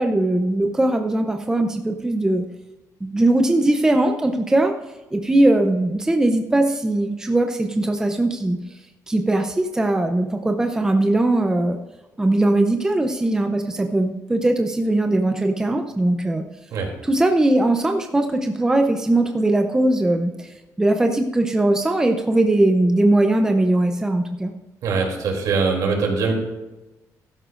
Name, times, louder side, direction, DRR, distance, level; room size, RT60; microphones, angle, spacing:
voice 1, 0.0-2.5 3.0-4.7 5.1-8.6 9.1-11.8 12.2-16.4 17.0-20.5 20.8-24.5, right 1 dB, 10° right, 5 dB, 0.6 m, -20 dB
voice 2, 24.8-26.3, right 4 dB, 70° right, 1 dB, 3.0 m, -22 dB
15.0 x 12.5 x 2.5 m, 1.1 s
cardioid pair, 145°, 6 cm